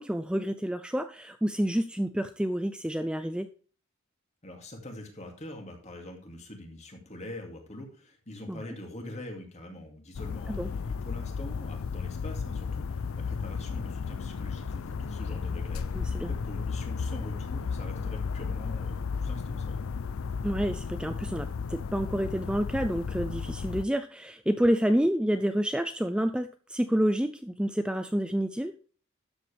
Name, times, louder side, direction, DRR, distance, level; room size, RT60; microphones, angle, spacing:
voice 1, 0.0-3.5 8.5-8.6 10.5-10.7 15.9-16.3 20.4-28.7, equal, 5° right, 9 dB, 0.4 m, -29 dB
voice 2, 4.4-19.8, left 1 dB, 35° left, 2 dB, 2.7 m, -44 dB
sound 1, 10.1-23.8, left 5 dB, 85° left, 0.5 m, -34 dB
12.5 x 8.0 x 3.5 m, 0.41 s
head